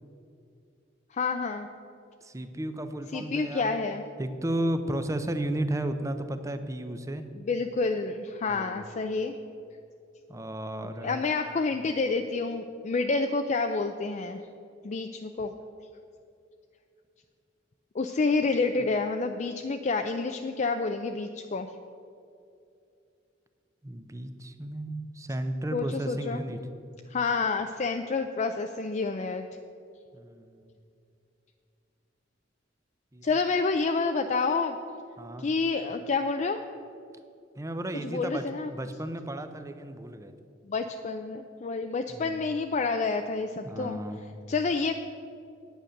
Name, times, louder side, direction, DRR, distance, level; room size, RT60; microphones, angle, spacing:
voice 1, 1.1-1.7 3.1-4.0 7.4-9.4 11.0-14.4 14.8-15.5 17.9-21.7 25.7-26.4 27.1-29.4 33.2-34.8 35.4-36.6 37.9-38.7 40.6-44.0 44.5-44.9, left 4 dB, 40° left, 6 dB, 0.4 m, -28 dB
voice 2, 2.2-3.8 4.2-7.2 8.5-8.8 10.3-11.2 23.8-26.6 30.1-30.7 33.1-33.3 35.2-35.5 37.6-40.3 42.1-42.4 43.7-44.2, right 1 dB, 15° right, 9 dB, 0.6 m, -33 dB
9.2 x 8.7 x 6.4 m, 2.5 s
head